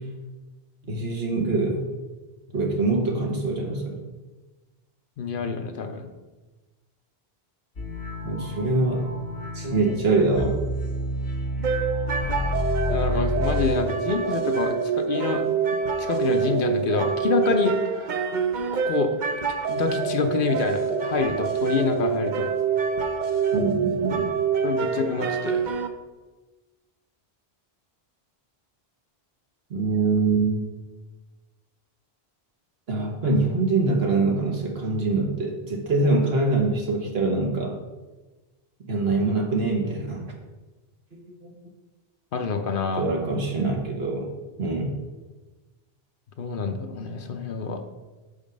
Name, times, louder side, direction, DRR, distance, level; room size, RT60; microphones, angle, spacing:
voice 1, 0.8-1.9 2.5-4.0 8.2-9.1 9.5-10.6 23.5-24.3 29.7-30.6 32.9-37.8 38.9-40.3 41.1-41.5 43.0-44.3 44.6-45.0, right 3 dB, 75° right, 0 dB, 1.5 m, -24 dB
voice 2, 5.2-6.1 12.9-15.5 16.0-17.8 18.7-19.1 19.7-22.5 24.6-25.7 42.3-43.1 46.4-47.8, left 5 dB, 60° left, 6 dB, 0.8 m, -27 dB
sound 1, 7.8-13.7, left 1 dB, 80° left, 1.6 m, -29 dB
sound 2, 11.6-25.9, right 6 dB, 55° right, 0.6 m, -26 dB
6.2 x 5.2 x 5.1 m, 1.2 s
omnidirectional pair, 1.0 m